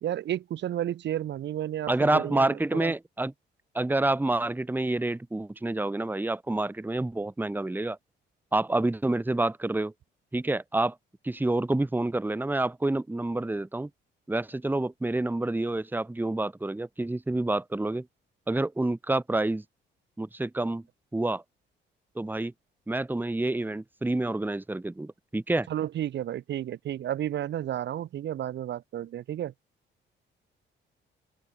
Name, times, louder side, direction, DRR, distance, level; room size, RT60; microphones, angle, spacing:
voice 1, 0.0-2.9 25.7-29.5, right 11 dB, 60° right, 0.9 m, -32 dB
voice 2, 1.9-3.3 3.7-8.0 8.5-9.9 10.3-10.9 11.2-13.9 14.3-18.1 18.5-19.6 20.2-20.8 21.1-21.4 22.1-22.5 22.9-25.7, right 2 dB, 10° right, 1.3 m, -28 dB
open air
cardioid pair, 90°, 20 cm